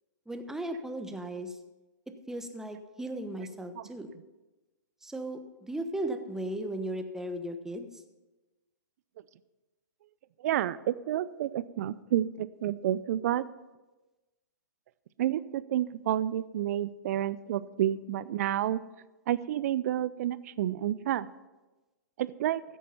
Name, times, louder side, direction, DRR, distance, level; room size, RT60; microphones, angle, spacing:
voice 1, 0.3-1.6 2.3-4.1 5.0-8.0, right 1 dB, 5° right, 7 dB, 1.0 m, -36 dB
voice 2, 10.4-13.4 15.2-18.8 19.3-21.3 22.2-22.6, right 12 dB, 55° right, 17 dB, 0.6 m, -30 dB
15.0 x 8.3 x 5.6 m, 1.1 s
hypercardioid pair, 120°, 10 cm